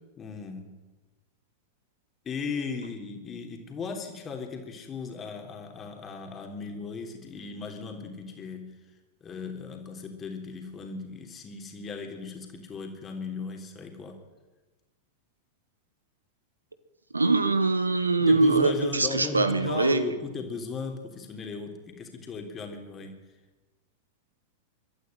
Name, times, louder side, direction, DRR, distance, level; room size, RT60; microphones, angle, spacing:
voice 1, 0.2-0.7 2.2-8.7 9.2-14.2 18.2-23.2, left 5 dB, 25° left, 4 dB, 3.4 m, -37 dB
voice 2, 17.1-20.0, right 3 dB, 80° right, 11 dB, 1.4 m, -23 dB
24.0 x 13.0 x 9.2 m, 1.2 s
figure-of-eight pair, 90°, 0 cm